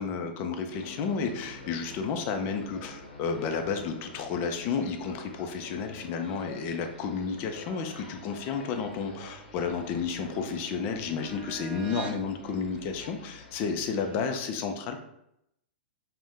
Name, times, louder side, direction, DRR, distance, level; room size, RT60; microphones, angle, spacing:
voice 1, 0.0-15.0, left 5 dB, 40° left, 5 dB, 0.4 m, -32 dB
sound 1, 0.7-14.4, left 2 dB, 70° left, 0.8 m, -47 dB
sound 2, 9.2-12.3, right 6 dB, 25° right, 0.5 m, -44 dB
2.6 x 2.1 x 3.5 m, 0.79 s
hypercardioid pair, 115°, 6 cm